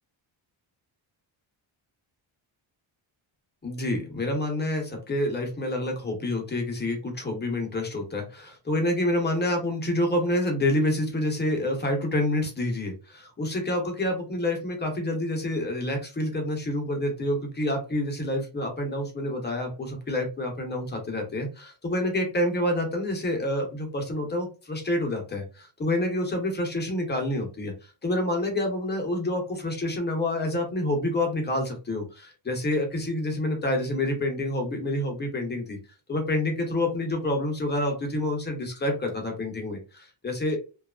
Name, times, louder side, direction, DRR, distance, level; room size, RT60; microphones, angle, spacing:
voice 1, 3.6-27.7 28.0-35.8 36.1-40.6, left 1 dB, 20° left, 2 dB, 0.6 m, -28 dB
2.7 x 2.3 x 2.2 m, 0.33 s
wide cardioid pair, 170°, 47 cm